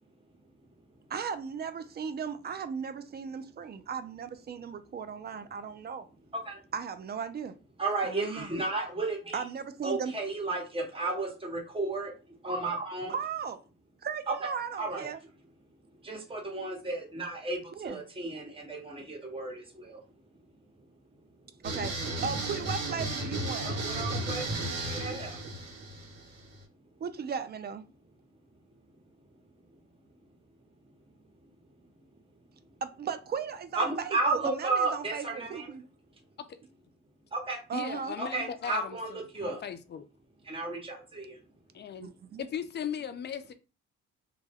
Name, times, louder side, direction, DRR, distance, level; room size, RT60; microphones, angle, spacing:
voice 1, 1.1-6.1 6.7-7.6 8.0-8.5 9.3-10.1 13.1-13.6 14.0-15.2 17.7-18.0 21.6-22.0 22.2-23.7 24.1-24.3 27.0-27.8 32.8-35.9 37.7-38.2 42.0-42.4, right 6 dB, 35° right, 0.4 m, -36 dB
voice 2, 7.8-9.4 9.8-12.1 12.4-13.1 14.8-15.1 16.0-20.0 23.6-25.4 33.7-35.7 37.3-37.6 38.2-39.6 40.5-41.4, right 3 dB, 20° right, 1.1 m, -33 dB
sound 1, 21.6-26.6, right 1 dB, 55° right, 1.0 m, -34 dB
voice 3, 37.7-40.0 41.7-42.1 42.4-43.5, left 8 dB, 35° left, 0.4 m, -38 dB
2.2 x 2.1 x 3.4 m
cardioid pair, 90°, 30 cm